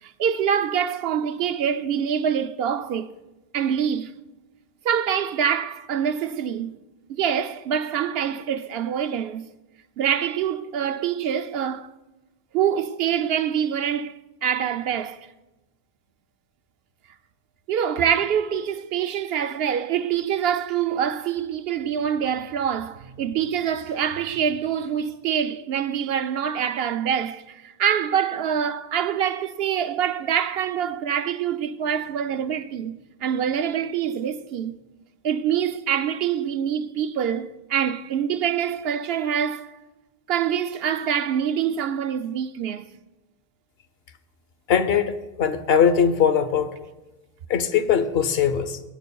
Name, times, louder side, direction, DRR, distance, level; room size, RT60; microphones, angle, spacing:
voice 1, 0.0-3.2 3.5-4.1 4.8-6.7 7.1-9.5 10.0-11.9 12.5-15.3 17.7-33.0 33.2-34.7 35.2-39.7 40.3-42.9, right 8 dB, 75° right, 0.8 m, -25 dB
voice 2, 44.7-45.1 45.4-46.7 47.5-48.8, left 7 dB, 75° left, 1.0 m, -20 dB
23.0 x 9.2 x 2.3 m
omnidirectional pair, 1.0 m